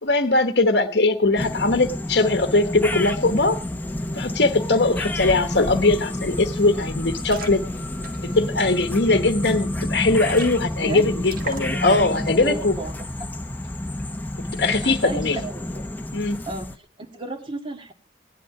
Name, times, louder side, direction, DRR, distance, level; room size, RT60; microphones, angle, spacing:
voice 1, 0.0-3.6 4.1-7.6 8.2-12.7 14.6-15.4 16.1-16.4, left 2 dB, 70° left, 6 dB, 1.1 m, -20 dB
sound 1, 1.4-16.8, left 1 dB, 10° left, 0.8 m, -29 dB
sound 2, 6.1-6.2 6.4-6.6 7.1-9.1 9.6-9.7 10.0-10.1 10.3-10.9 11.2-12.1, right 3 dB, 55° right, 1.5 m, -39 dB
voice 2, 12.4-13.3 14.8-15.6 16.5-17.9, right 2 dB, 30° right, 4 dB, 1.8 m, -33 dB
17.0 x 11.0 x 4.9 m, 0.40 s
head